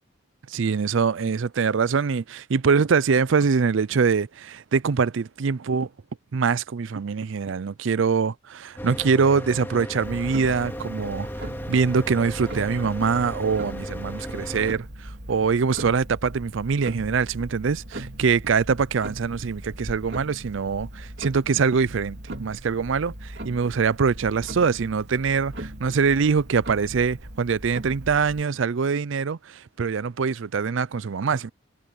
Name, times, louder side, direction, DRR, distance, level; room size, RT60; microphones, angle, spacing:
voice 1, 0.5-5.9 6.3-11.3 11.7-31.5, right 5 dB, 70° right, 0.5 m, -23 dB
Mechanical fan, 8.8-14.7, equal, 10° left, 2.0 m, -35 dB
Clock, 10.0-28.4, right 1 dB, 55° right, 4.0 m, -39 dB
head